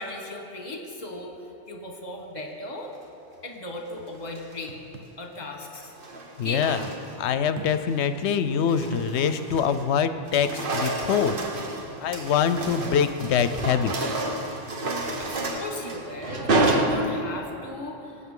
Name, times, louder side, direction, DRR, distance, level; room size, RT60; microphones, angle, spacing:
voice 1, 0.0-1.3 1.7-2.9 3.4-4.7 5.2-5.9 6.4-6.6 15.2-18.2, left 2 dB, 40° left, 2 dB, 1.4 m, -36 dB
sound 1, 4.2-4.6 5.8-7.3 7.7-8.0 8.5-9.9 10.2-17.5, right 2 dB, 55° right, 1.1 m, -29 dB
sound 2, 4.7-5.2 6.3-6.4 7.5-8.0 8.4-8.5 8.9-9.2 11.3-11.5 13.4-13.7, right 5 dB, 85° right, 1.1 m, -42 dB
voice 2, 6.4-6.9 7.2-11.4 12.0-13.9, left 7 dB, 75° left, 11 dB, 0.8 m, -24 dB
18.5 x 8.3 x 3.7 m, 2.9 s
omnidirectional pair, 1.2 m